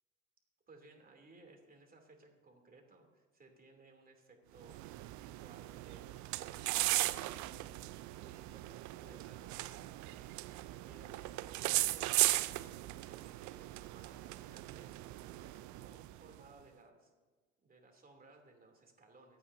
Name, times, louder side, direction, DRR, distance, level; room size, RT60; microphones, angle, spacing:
voice 1, 0.7-17.1 17.6-19.4, right 3 dB, 25° right, 2 dB, 3.0 m, -61 dB
sound 1, 4.6-16.4, right 18 dB, 55° right, 0.6 m, -37 dB
24.5 x 9.1 x 2.7 m, 1.3 s
hypercardioid pair, 70°, 35 cm